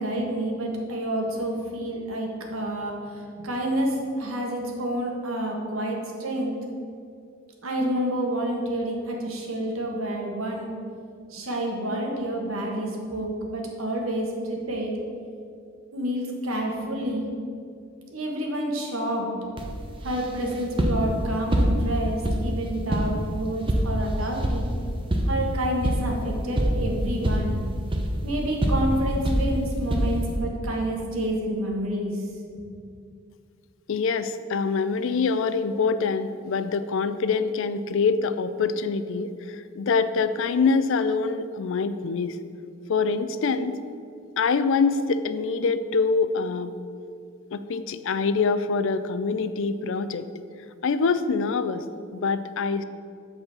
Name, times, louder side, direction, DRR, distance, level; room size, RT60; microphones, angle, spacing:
voice 1, 0.0-6.5 7.6-10.7 11.3-14.9 15.9-17.3 18.1-19.4 20.0-24.7 25.3-27.6 28.2-32.1 32.5-32.7, right 1 dB, 85° right, 0 dB, 1.5 m, -29 dB
sound 1, 19.6-30.4, equal, 25° right, 0.8 m, -26 dB
voice 2, 33.9-42.4 42.9-43.8 44.4-46.7 47.5-50.3 50.8-51.8 52.1-52.8, left 4 dB, 65° left, 12 dB, 0.4 m, -25 dB
7.9 x 4.1 x 6.9 m, 2.3 s
head